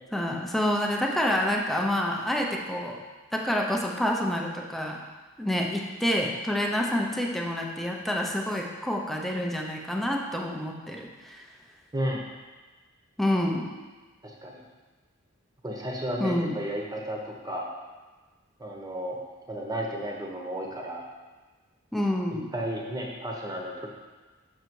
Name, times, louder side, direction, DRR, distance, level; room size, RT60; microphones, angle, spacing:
voice 1, 0.1-3.0 3.3-5.0 5.4-11.4 13.2-13.7 16.2-16.6 21.9-22.5, left 1 dB, ahead, -1 dB, 0.8 m, -28 dB
voice 2, 11.9-12.3 14.2-14.6 15.6-17.7 18.6-21.0 22.5-23.9, equal, 20° right, -1 dB, 1.1 m, -33 dB
6.6 x 6.5 x 4.7 m, 1.3 s
head